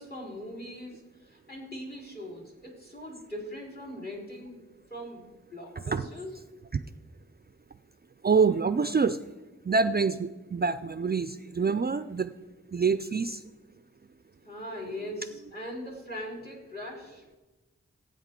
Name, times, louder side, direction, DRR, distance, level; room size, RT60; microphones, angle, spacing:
voice 1, 0.0-6.3 14.4-17.4, equal, 35° left, -2 dB, 4.0 m, -41 dB
voice 2, 8.2-9.2 9.7-12.3 12.7-13.4, right 5 dB, 35° right, 12 dB, 0.4 m, -26 dB
16.0 x 8.9 x 3.7 m, 1.2 s
wide cardioid pair, 65°, 29 cm